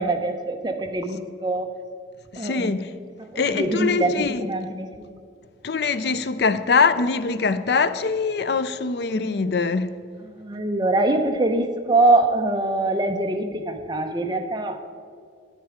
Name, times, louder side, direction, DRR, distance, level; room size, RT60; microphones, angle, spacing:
voice 1, 0.0-1.8 2.4-2.8 3.2-5.2 10.2-14.8, right 2 dB, 25° right, 0.7 m, -24 dB
voice 2, 2.3-2.9 3.4-4.4 5.6-9.9, left 4 dB, 60° left, 0.5 m, -23 dB
10.0 x 10.0 x 5.0 m
head